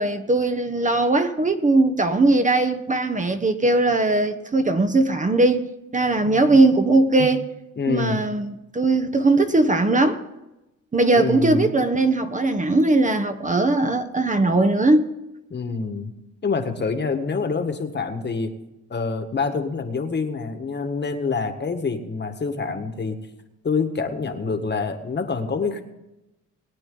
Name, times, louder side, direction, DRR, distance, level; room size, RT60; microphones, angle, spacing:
voice 1, 0.0-7.4 7.9-10.2 10.9-15.1, right 2 dB, 25° right, 1.0 m, -19 dB
voice 2, 6.2-6.6 7.2-7.4 7.8-8.2 11.1-11.7 15.5-16.1 16.4-18.5 18.9-23.2 23.6-25.8, left 4 dB, 35° left, 1.6 m, -26 dB
21.0 x 9.0 x 3.9 m
cardioid pair, 90°, 30 cm